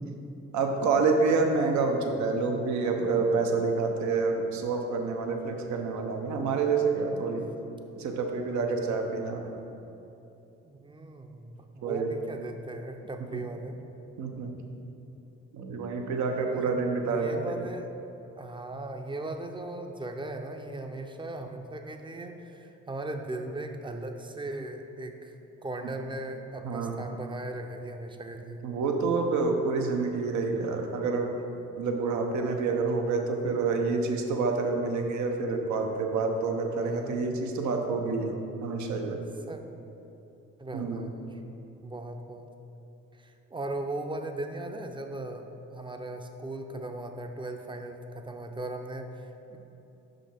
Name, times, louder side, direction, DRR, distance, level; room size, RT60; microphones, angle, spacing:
voice 1, 0.5-7.5 8.0-9.5 11.8-12.1 13.3-13.4 14.2-14.5 15.5-17.4 26.6-27.0 28.6-31.3 31.8-39.2 40.7-41.1, right 4 dB, 70° right, 3 dB, 0.8 m, -28 dB
voice 2, 10.6-13.8 16.3-16.7 17.1-17.9 18.4-28.6 36.8-37.4 39.5-39.6 40.6-41.4 41.8-42.5 43.1-45.5 45.7-49.6, right 2 dB, 15° right, 5 dB, 0.6 m, -38 dB
5.8 x 5.2 x 4.4 m, 2.9 s
supercardioid pair, 55°, 31 cm